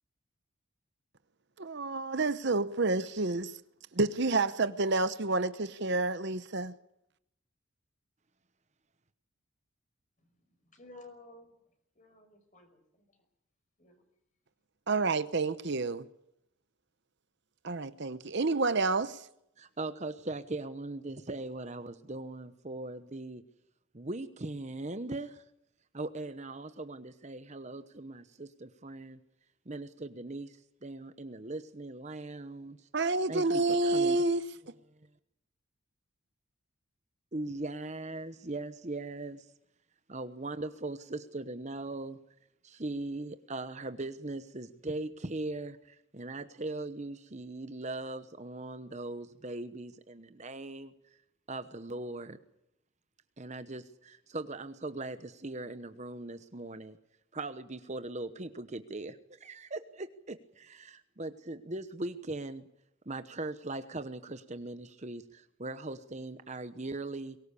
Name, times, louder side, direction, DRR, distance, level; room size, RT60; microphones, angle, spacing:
voice 1, 1.6-3.6 3.9-6.7 14.9-16.1 17.6-19.3 32.9-34.4, right 3 dB, 55° right, 0.8 m, -29 dB
voice 2, 10.2-13.3 13.8-14.0, left 2 dB, 35° left, 5.4 m, -55 dB
voice 3, 19.6-23.4 23.9-25.4 25.9-29.2 29.7-32.9 33.3-34.2 37.3-39.5 40.1-42.2 42.6-50.9 51.5-52.4 53.4-57.0 57.3-62.7 63.1-67.4, right 2 dB, 35° right, 1.0 m, -40 dB
23.0 x 19.5 x 8.4 m
head